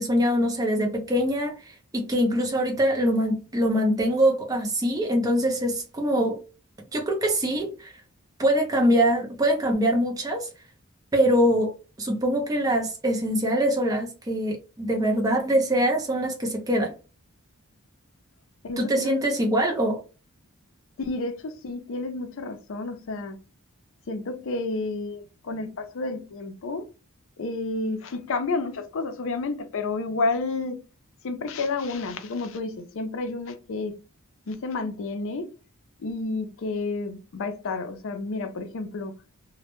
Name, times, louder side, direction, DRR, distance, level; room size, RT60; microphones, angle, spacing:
voice 1, 0.0-6.4 6.9-7.9 8.4-10.5 11.1-11.7 12.0-16.9 18.8-20.0, equal, 15° right, 0.4 m, -23 dB
voice 2, 18.6-19.3 21.0-23.4 24.1-26.9 27.4-30.8 31.2-33.9 34.5-35.5 36.0-39.1, left 3 dB, 60° left, 0.4 m, -30 dB
2.1 x 2.0 x 2.9 m
head